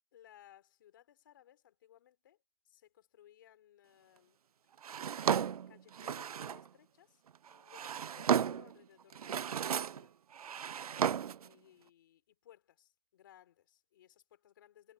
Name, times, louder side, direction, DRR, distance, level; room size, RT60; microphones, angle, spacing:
voice 1, 0.1-4.4 5.2-7.2 7.5-10.1 11.4-14.9, left 12 dB, 30° left, 3.6 m, -62 dB
Drawer open or close, 4.8-6.7 7.5-8.7 9.1-10.0 10.3-11.5, right 8 dB, 60° right, 0.4 m, -34 dB
hypercardioid pair, 175°, 21 cm